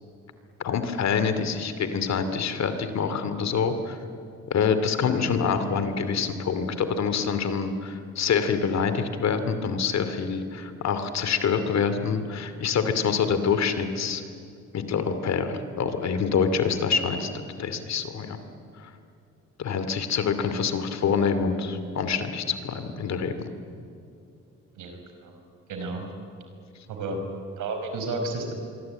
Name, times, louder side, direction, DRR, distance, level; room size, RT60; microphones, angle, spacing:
voice 1, 0.6-4.0 4.5-14.2 14.7-17.3 17.6-18.4 18.8-18.9 19.6-23.5, left 6 dB, 60° left, 10 dB, 2.6 m, -26 dB
voice 2, 24.7-25.3 25.7-26.0 26.9-27.2 27.6-28.5, right 3 dB, 80° right, 5 dB, 5.1 m, -32 dB
25.5 x 23.0 x 9.0 m, 2.4 s
cardioid pair, 90°, 30 cm